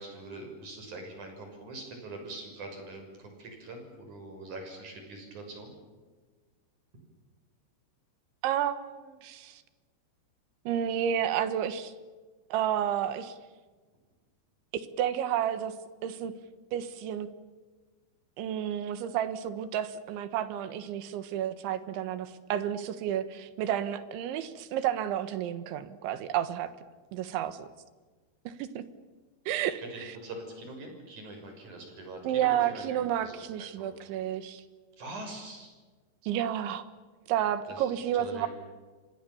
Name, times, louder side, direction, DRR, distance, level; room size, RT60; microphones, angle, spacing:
voice 1, 0.0-5.7 29.8-33.9 35.0-35.7 37.7-37.9 38.2-38.5, right 2 dB, 40° right, 4 dB, 7.6 m, -43 dB
voice 2, 8.4-9.6 10.7-11.9 12.5-13.4 15.0-15.7 16.0-16.3 16.7-17.3 18.4-26.7 27.1-27.7 28.5-28.8 29.5-30.2 32.2-34.6 36.2-36.8 37.3-38.5, right 10 dB, 80° right, 11 dB, 3.8 m, -31 dB
29.5 x 25.5 x 7.1 m, 1.4 s
omnidirectional pair, 5.3 m